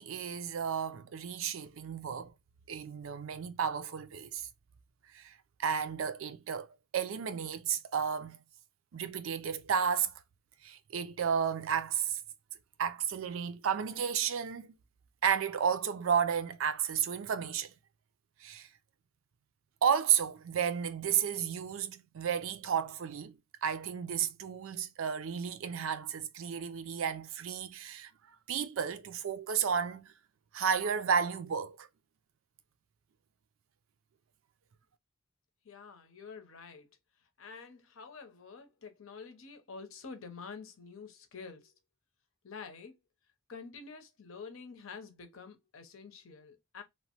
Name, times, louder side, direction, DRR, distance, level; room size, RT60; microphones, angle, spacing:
voice 1, 0.0-2.3 2.7-4.5 5.1-5.3 5.6-6.7 6.9-8.4 8.9-10.1 10.6-12.2 12.8-14.7 15.2-17.7 18.4-18.7 19.8-28.1 28.5-30.1 30.5-31.9, right 7 dB, 80° right, 0.4 m, -32 dB
voice 2, 35.6-36.9 37.2-41.7 42.4-43.0 43.5-46.8, left 5 dB, 85° left, 0.7 m, -48 dB
2.9 x 2.1 x 2.8 m
head